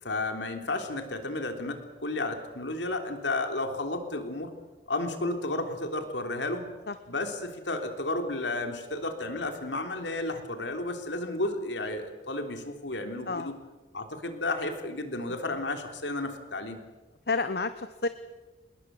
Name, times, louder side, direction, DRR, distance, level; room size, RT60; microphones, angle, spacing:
voice 1, 0.0-4.5 4.9-6.7 7.1-13.6 13.9-16.8, left 2 dB, 80° left, 6 dB, 3.5 m, -32 dB
voice 2, 17.3-18.1, left 3 dB, 60° left, 11 dB, 1.0 m, -30 dB
27.5 x 21.0 x 7.8 m, 1.2 s
head